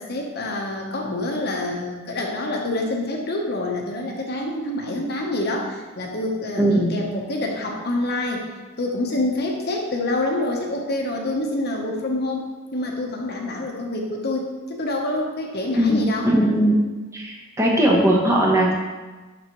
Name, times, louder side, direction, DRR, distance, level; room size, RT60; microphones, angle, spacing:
voice 1, 0.0-8.5 8.8-16.3, left 2 dB, 50° left, 0 dB, 0.9 m, -27 dB
voice 2, 6.6-6.9 15.8-16.8 17.1-18.7, right 1 dB, 15° right, -2 dB, 0.9 m, -19 dB
11.5 x 4.1 x 3.0 m, 1.3 s
head